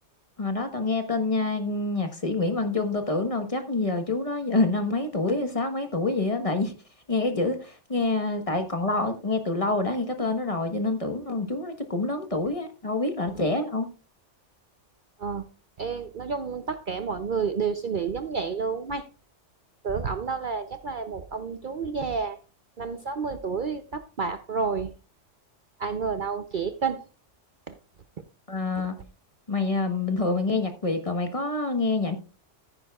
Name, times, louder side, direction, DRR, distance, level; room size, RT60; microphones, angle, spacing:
voice 1, 0.4-6.7 7.1-13.9 28.5-28.9 29.5-32.1, left 3 dB, 30° left, 6 dB, 1.3 m, -27 dB
voice 2, 15.8-19.1 19.8-22.4 22.8-24.9 25.8-27.0 27.7-27.8, right 5 dB, 50° right, 9 dB, 0.7 m, -30 dB
14.0 x 10.0 x 2.3 m, 0.33 s
omnidirectional pair, 1.2 m